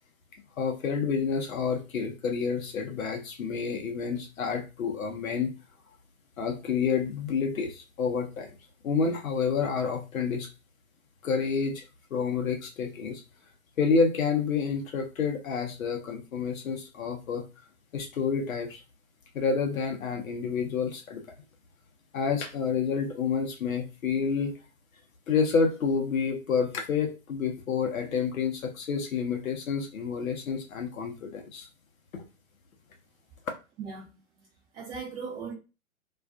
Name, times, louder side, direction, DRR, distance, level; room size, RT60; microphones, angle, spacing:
voice 1, 0.6-5.5 6.4-8.5 8.8-10.5 11.2-11.8 12.1-13.2 13.8-17.4 17.9-18.8 19.3-21.2 22.1-24.6 25.3-31.7 32.1-32.2, left 5 dB, 70° left, 0.7 m, -29 dB
voice 2, 33.8-34.5 34.7-35.5, right 5 dB, 10° right, 0.5 m, -39 dB
2.4 x 2.3 x 2.3 m
figure-of-eight pair, 115°, 42 cm